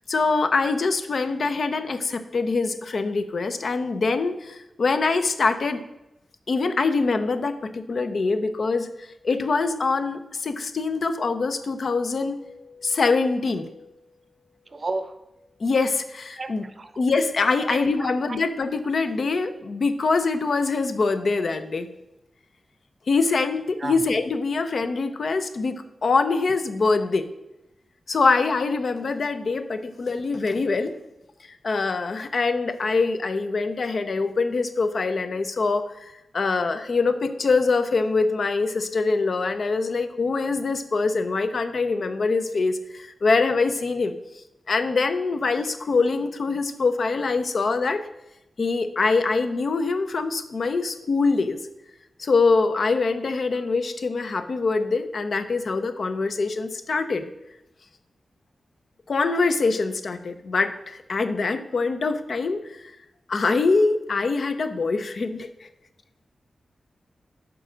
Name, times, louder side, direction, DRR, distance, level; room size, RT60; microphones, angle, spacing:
voice 1, 0.1-5.8 6.5-8.9 9.2-13.9 15.6-16.7 17.0-21.9 23.1-27.3 28.1-30.9 31.6-44.1 44.7-48.0 48.6-51.6 52.2-57.2 59.1-62.9 63.3-65.7, left 4 dB, 55° left, 9 dB, 0.6 m, -24 dB
voice 2, 14.7-15.1 16.3-16.5 16.8-16.9 17.6-18.4 23.8-24.0, right 3 dB, 35° right, 10 dB, 0.6 m, -32 dB
6.8 x 5.0 x 6.3 m, 0.93 s
wide cardioid pair, 155°, 0 cm